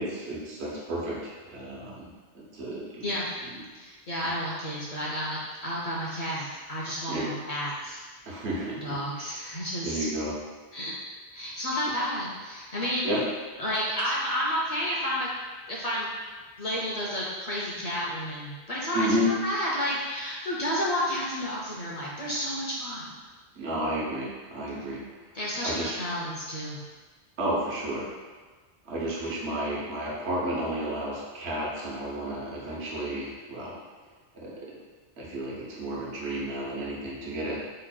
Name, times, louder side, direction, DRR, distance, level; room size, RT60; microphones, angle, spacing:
voice 1, 0.0-2.1 2.3-3.1 3.4-3.6 7.1-7.2 8.3-9.4 9.8-10.3 13.0-13.2 18.9-19.3 23.6-25.0 25.6-26.0 27.4-28.1 28.8-33.8 34.4-34.5 35.2-37.7, right 1 dB, 80° right, -5 dB, 1.1 m, -32 dB
voice 2, 3.7-8.0 8.8-10.1 10.7-10.9 11.3-13.1 13.6-15.3 15.7-16.1 16.6-23.1 25.3-26.8, equal, 50° left, -5 dB, 0.5 m, -31 dB
4.1 x 3.1 x 2.2 m, 1.4 s
omnidirectional pair, 1.1 m